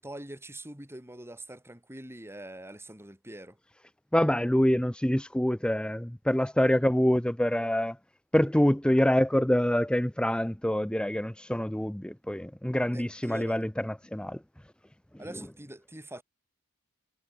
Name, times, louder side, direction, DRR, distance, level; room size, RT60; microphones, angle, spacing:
voice 1, 0.0-3.6 12.9-13.6 15.2-16.2, right 1 dB, 10° right, 7.4 m, -44 dB
voice 2, 4.1-8.0 8.3-14.4, left 1 dB, 5° left, 0.6 m, -26 dB
head